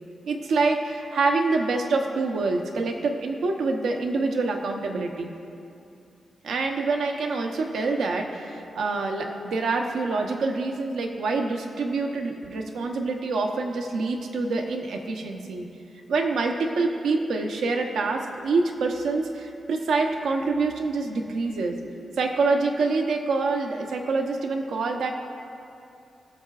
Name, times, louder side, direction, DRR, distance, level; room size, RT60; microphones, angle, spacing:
voice 1, 0.3-5.3 6.4-15.7 16.1-21.7 22.2-25.1, right 3 dB, 85° right, 3 dB, 0.8 m, -26 dB
20.0 x 6.6 x 2.4 m, 2.6 s
wide cardioid pair, 175°, 0 cm